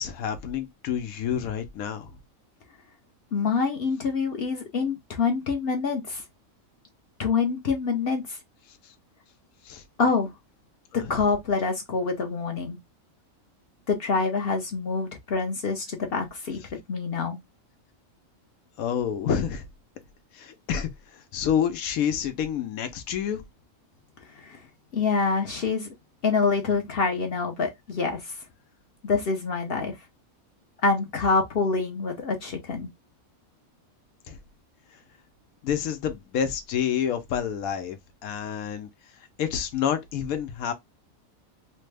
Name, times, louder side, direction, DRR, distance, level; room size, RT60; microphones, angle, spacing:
voice 1, 0.0-2.1 9.7-9.8 10.9-11.2 18.8-19.7 20.3-23.4 34.3-34.4 35.6-38.9 39.4-40.7, left 8 dB, 90° left, 1.1 m, -28 dB
voice 2, 3.3-6.2 7.2-8.4 10.0-10.3 10.9-12.8 13.9-16.6 16.9-17.4 24.4-24.6 24.9-25.9 26.2-28.4 29.0-30.0 30.8-32.9, left 4 dB, 55° left, 0.8 m, -26 dB
3.2 x 2.1 x 3.3 m
omnidirectional pair, 1.4 m